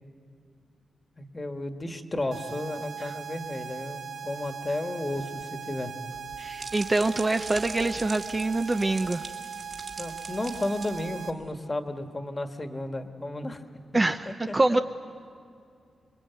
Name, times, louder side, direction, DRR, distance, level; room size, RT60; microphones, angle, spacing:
voice 1, 1.2-5.9 10.0-13.6 14.2-14.5, left 1 dB, 20° left, 7 dB, 1.5 m, -33 dB
sound 1, 2.3-11.3, right 7 dB, 55° right, 1.0 m, -39 dB
sound 2, 6.1-11.5, right 3 dB, 40° right, 2.8 m, -42 dB
voice 2, 6.4-9.2 13.9-14.8, right 2 dB, 20° right, 7 dB, 0.6 m, -25 dB
27.0 x 22.5 x 9.3 m, 2.5 s
wide cardioid pair, 160°, 0 cm